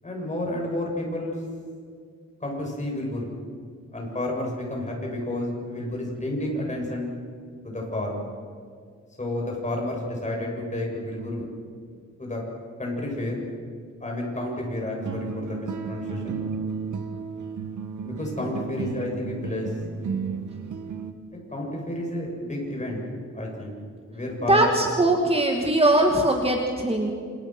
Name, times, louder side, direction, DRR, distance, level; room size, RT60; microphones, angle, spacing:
voice 1, 0.0-1.4 2.4-3.3 3.9-7.1 7.6-8.2 9.2-11.5 12.2-12.4 12.8-13.4 14.0-16.4 18.0-19.8 21.5-23.0 23.3-23.7 24.1-24.8, left 1 dB, 25° left, -1 dB, 7.8 m, -30 dB
sound 1, 15.0-21.1, right 5 dB, 85° right, 1.9 m, -33 dB
voice 2, 24.5-27.1, right 1 dB, 20° right, 2 dB, 2.4 m, -21 dB
29.0 x 28.0 x 6.2 m, 2.2 s
wide cardioid pair, 135°, 30 cm